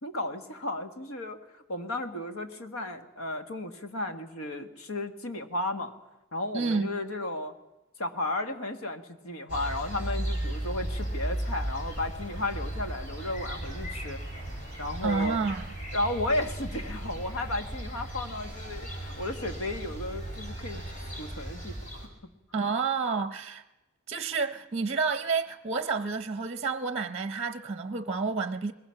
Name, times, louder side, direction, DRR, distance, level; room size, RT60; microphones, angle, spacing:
voice 1, 0.0-5.9 6.3-7.5 8.0-14.2 14.8-15.4 15.9-20.8 21.2-22.1, left 1 dB, 85° left, 1.8 m, -34 dB
voice 2, 6.5-7.0 15.0-15.7 22.5-23.6 24.1-28.7, right 4 dB, 30° right, 0.8 m, -29 dB
sound 1, 9.5-22.1, right 1 dB, 35° left, 5.1 m, -36 dB
22.0 x 21.0 x 5.8 m
head